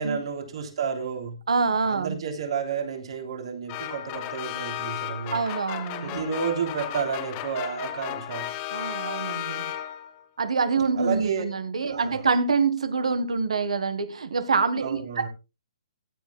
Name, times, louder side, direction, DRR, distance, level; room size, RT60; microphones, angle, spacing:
voice 1, 0.0-1.4 1.9-5.4 6.0-8.5 11.0-11.4 11.9-12.3 14.8-15.3, right 6 dB, 65° right, 4 dB, 3.4 m, -31 dB
voice 2, 1.5-2.2 5.3-6.2 8.7-9.6 10.4-15.3, right 4 dB, 85° right, 13 dB, 1.6 m, -26 dB
sound 1, 3.7-10.2, left 12 dB, 30° left, 1.1 m, -34 dB
16.0 x 10.5 x 2.3 m, 0.27 s
hypercardioid pair, 145°, 3 cm